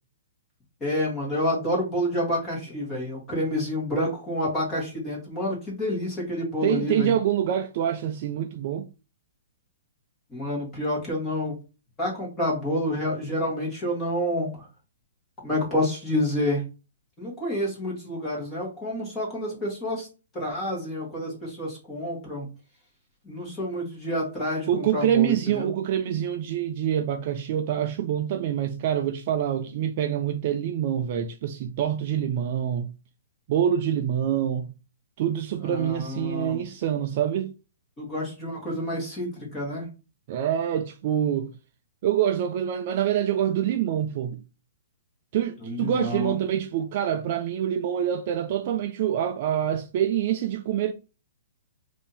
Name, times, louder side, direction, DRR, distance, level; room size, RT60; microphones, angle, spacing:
voice 1, 0.8-7.1 10.3-11.6 12.0-14.5 15.4-16.6 17.2-20.1 20.3-22.5 23.3-25.7 35.6-36.6 38.0-39.8 45.6-46.4, left 1 dB, 15° left, 1.6 m, -28 dB
voice 2, 6.6-8.9 24.7-32.9 33.5-34.7 35.2-37.5 40.3-41.5 42.0-44.4 45.3-50.9, right 10 dB, 35° right, 0.3 m, -26 dB
3.4 x 2.7 x 4.0 m
hypercardioid pair, 170°, 0 cm